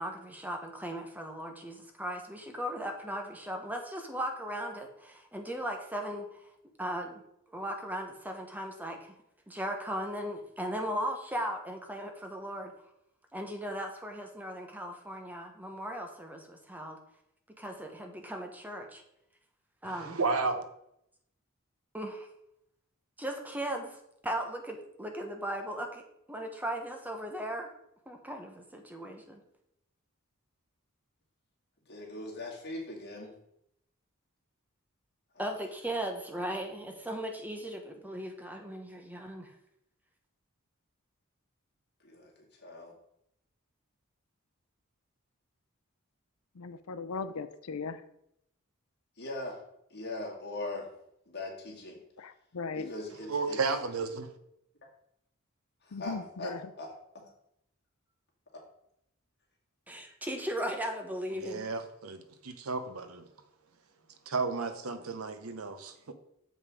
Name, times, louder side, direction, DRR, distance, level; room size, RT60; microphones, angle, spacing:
voice 1, 0.0-6.4 6.8-7.2 7.5-9.1 9.5-12.7 13.3-17.0 17.6-19.0 19.8-20.2 21.9-22.3 23.2-24.0 24.2-26.0 26.3-27.7 28.1-29.4 35.4-39.5 59.9-61.6, right 1 dB, 10° right, 4 dB, 1.0 m, -37 dB
voice 2, 19.8-20.7 53.2-54.3 61.3-63.2 64.3-66.1, right 4 dB, 85° right, 9 dB, 0.9 m, -33 dB
voice 3, 31.9-33.4 35.5-35.6 42.0-42.3 42.6-42.9 49.2-49.6 49.9-50.9 51.3-52.0 52.7-53.6 55.8-56.9 57.1-57.2, left 2 dB, 50° left, -1 dB, 2.3 m, -40 dB
voice 4, 46.6-48.0 52.2-52.9 55.9-56.6, left 4 dB, 90° left, 11 dB, 0.5 m, -38 dB
7.2 x 5.4 x 4.9 m, 0.78 s
head